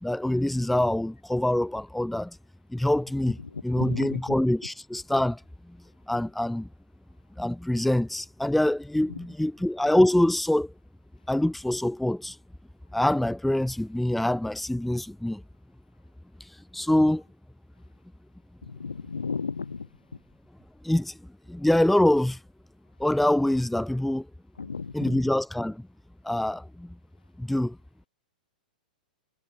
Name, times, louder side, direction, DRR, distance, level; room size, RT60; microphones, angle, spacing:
voice 1, 0.0-2.4 2.7-3.4 3.6-5.4 6.1-6.7 7.4-10.7 11.3-12.4 12.9-15.4 16.7-17.2 20.8-21.1 21.5-22.4 23.0-24.3 24.9-25.9 26.2-26.9 27.4-27.8, left 1 dB, ahead, 0.9 m, -25 dB
voice 2, 3.4-4.4 9.1-9.2 18.6-20.2 24.6-25.2, left 5 dB, 75° left, 4.5 m, -35 dB
figure-of-eight pair, 100°, 5 cm